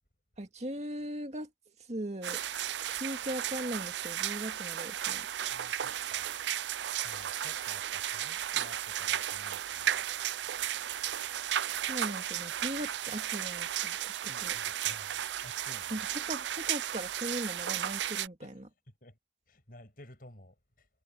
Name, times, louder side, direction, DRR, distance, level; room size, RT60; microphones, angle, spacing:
voice 1, 0.4-1.5 1.8-2.4 2.9-5.3 11.8-14.1 14.4-14.5 15.9-18.7, right 1 dB, 40° right, 2.1 m, -39 dB
sound 1, 2.2-18.3, right 11 dB, 85° right, 0.5 m, -34 dB
voice 2, 5.5-6.4 7.0-10.0 14.3-16.1 18.4-18.6 19.0-19.2 19.5-20.9, left 1 dB, 55° left, 7.6 m, -54 dB
head